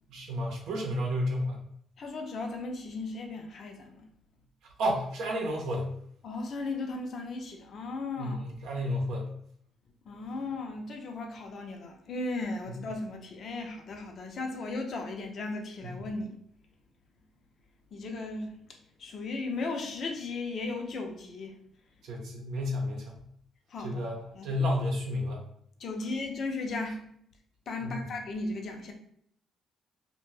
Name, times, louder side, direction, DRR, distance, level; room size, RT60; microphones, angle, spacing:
voice 1, 0.1-1.6 4.8-5.9 8.2-9.3 15.8-15.9 22.0-23.2 23.8-25.4 27.8-28.0, equal, 80° right, 0 dB, 0.7 m, -31 dB
voice 2, 2.0-4.1 6.2-8.5 10.1-16.4 17.9-18.5 19.0-21.5 23.7-24.0 24.3-24.5 25.8-27.0 27.7-28.9, left 3 dB, 55° left, 3 dB, 0.5 m, -36 dB
2.6 x 2.1 x 3.1 m, 0.67 s
cardioid pair, 95°, 0 cm